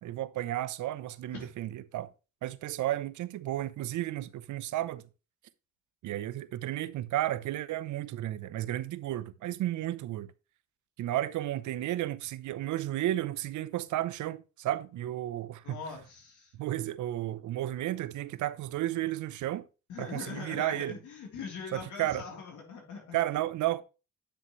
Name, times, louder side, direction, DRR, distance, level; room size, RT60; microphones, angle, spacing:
voice 1, 0.0-2.1 2.4-5.0 6.0-10.3 11.0-15.8 16.5-19.6 20.0-21.0 21.7-22.2 23.1-23.8, right 14 dB, 75° right, 0.8 m, -33 dB
voice 2, 15.6-16.5 19.9-23.2, left 5 dB, 80° left, 3.4 m, -42 dB
10.0 x 6.0 x 3.1 m
cardioid pair, 90°, 30 cm